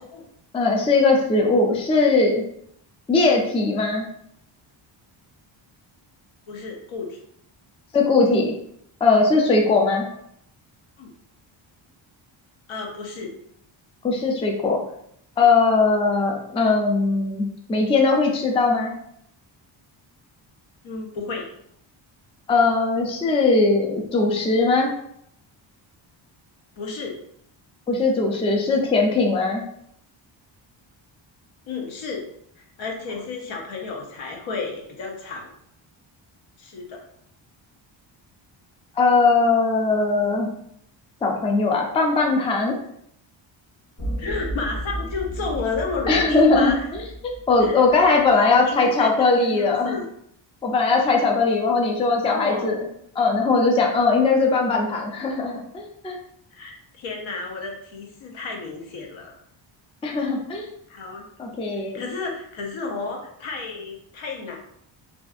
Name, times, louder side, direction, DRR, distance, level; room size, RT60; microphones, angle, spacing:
voice 1, 0.5-2.4 3.1-4.1 7.9-8.5 9.0-10.0 14.0-14.8 15.4-18.9 22.5-24.9 27.9-29.6 39.0-40.5 41.2-42.8 46.1-50.0 50.6-52.8 53.2-56.2 60.0-60.7 61.4-62.0, left 3 dB, 15° left, 1 dB, 0.3 m, -20 dB
voice 2, 6.5-7.2 11.0-11.1 12.7-13.3 20.8-21.5 26.8-27.2 31.7-32.2 32.6-35.5 36.6-37.0 44.2-46.9 47.6-47.8 48.6-50.0 52.3-52.7 56.5-59.3 60.9-61.3 61.9-64.6, left 4 dB, 70° left, 1 dB, 0.8 m, -32 dB
sound 1, 44.0-48.3, right 1 dB, 40° left, 1.1 m, -33 dB
2.6 x 2.5 x 2.4 m, 0.71 s
cardioid pair, 90°, 48 cm